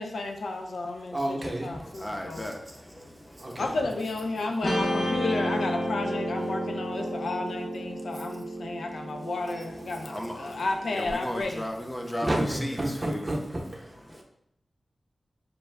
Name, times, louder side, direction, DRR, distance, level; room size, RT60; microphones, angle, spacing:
voice 1, 0.0-2.5 3.6-11.6, left 2 dB, 90° left, 0.5 m, -32 dB
voice 2, 1.1-2.5 3.4-3.9 8.7-8.8 12.2-14.2, right 1 dB, 30° right, 0.8 m, -32 dB
voice 3, 1.7-3.6 4.3-4.4 10.0-10.6 10.9-13.4 14.1-14.2, left 1 dB, 20° left, 0.7 m, -36 dB
Guitar, 4.6-11.1, equal, 50° left, 1.0 m, -32 dB
5.3 x 2.2 x 3.3 m
wide cardioid pair, 75°, 0 cm